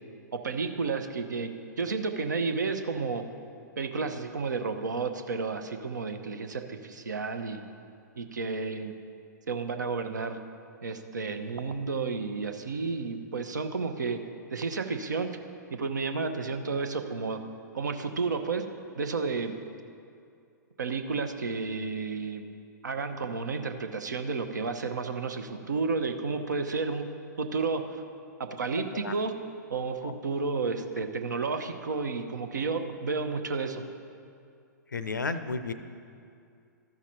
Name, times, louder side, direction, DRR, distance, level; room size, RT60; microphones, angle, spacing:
voice 1, 0.3-1.5 1.8-3.2 3.8-7.6 8.2-8.9 9.5-10.4 10.8-14.2 14.5-15.3 15.7-17.4 17.7-18.6 18.9-19.6 20.8-22.5 22.8-27.1 27.4-28.0 28.4-29.3 29.7-33.8, right 4 dB, 70° right, 7 dB, 0.7 m, -31 dB
voice 2, 34.9-35.7, left 4 dB, 80° left, 12 dB, 0.5 m, -32 dB
13.5 x 6.0 x 4.3 m, 2.4 s
figure-of-eight pair, 110°, 10 cm